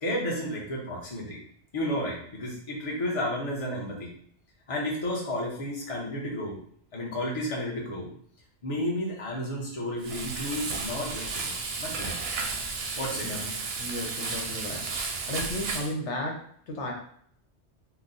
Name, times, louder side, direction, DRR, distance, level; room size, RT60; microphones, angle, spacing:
voice 1, 0.0-1.4 1.7-4.1 4.7-6.6 6.9-8.1 8.6-12.2 13.0-13.4, left 1 dB, 30° left, -3 dB, 0.8 m, -32 dB
Frying (food), 10.0-15.9, right 4 dB, 65° right, 0.7 m, -33 dB
voice 2, 13.2-14.9 15.3-16.9, left 1 dB, 75° left, 0 dB, 1.0 m, -34 dB
2.9 x 2.1 x 3.8 m, 0.63 s
omnidirectional pair, 1.2 m